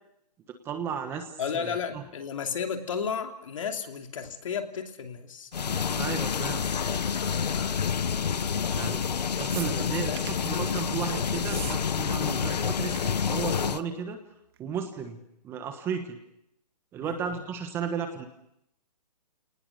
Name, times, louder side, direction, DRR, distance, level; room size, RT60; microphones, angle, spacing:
voice 1, 0.5-2.0 5.9-6.7 8.7-9.0 9.4-14.2 14.6-16.2 16.9-18.3, right 6 dB, 10° right, 7 dB, 1.3 m, -34 dB
voice 2, 1.4-5.5 7.2-7.8 8.5-8.9 9.7-10.8 17.0-17.4, left 6 dB, 50° left, 5 dB, 2.9 m, -34 dB
sound 1, 5.5-13.8, left 6 dB, 85° left, 1.0 m, -28 dB
sound 2, 9.5-10.5 11.3-11.8 12.0-12.6 12.8-13.0 13.3-13.6 14.6-14.7, right 10 dB, 35° right, 2.0 m, -41 dB
29.5 x 19.0 x 6.7 m, 0.78 s
hypercardioid pair, 165°, 21 cm